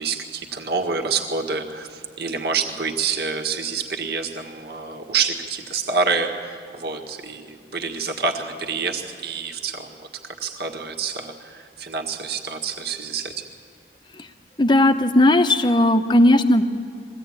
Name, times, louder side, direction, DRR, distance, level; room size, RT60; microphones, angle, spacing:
voice 1, 0.0-13.4, right 5 dB, 55° right, 3 dB, 1.8 m, -27 dB
voice 2, 14.6-16.6, left 1 dB, 25° left, 8 dB, 0.9 m, -16 dB
22.5 x 16.0 x 8.9 m, 2.4 s
head